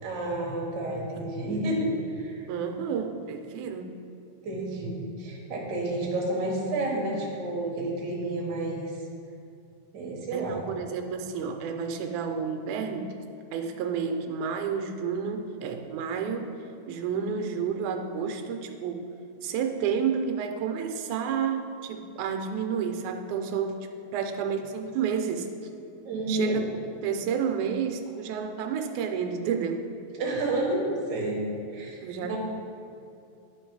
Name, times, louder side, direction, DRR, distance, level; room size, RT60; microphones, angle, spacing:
voice 1, 0.0-2.4 4.4-8.8 9.9-10.6 26.0-26.6 30.2-31.4 31.7-32.4, right 2 dB, 50° right, -2 dB, 1.3 m, -30 dB
voice 2, 2.5-4.0 10.3-13.1 13.5-19.1 19.4-25.6 26.3-26.6 27.0-29.9 32.0-32.4, right 6 dB, 90° right, 5 dB, 2.0 m, -30 dB
10.0 x 3.9 x 4.5 m, 2.5 s
omnidirectional pair, 3.4 m